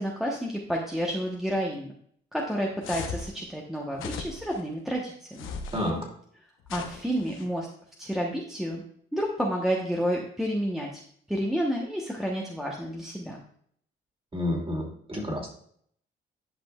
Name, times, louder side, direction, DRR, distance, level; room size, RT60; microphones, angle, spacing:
voice 1, 0.0-1.9 2.3-5.5 6.7-7.7 8.0-8.8 9.1-11.0 11.3-13.4, equal, ahead, -2 dB, 1.0 m, -30 dB
sound 1, 2.8-3.3 3.9-4.6 5.3-5.9 6.7-7.5, left 5 dB, 90° left, 0.9 m, -38 dB
voice 2, 14.3-15.6, left 1 dB, 25° right, -1 dB, 2.6 m, -30 dB
11.0 x 5.1 x 2.3 m, 0.63 s
cardioid pair, 90°, 20 cm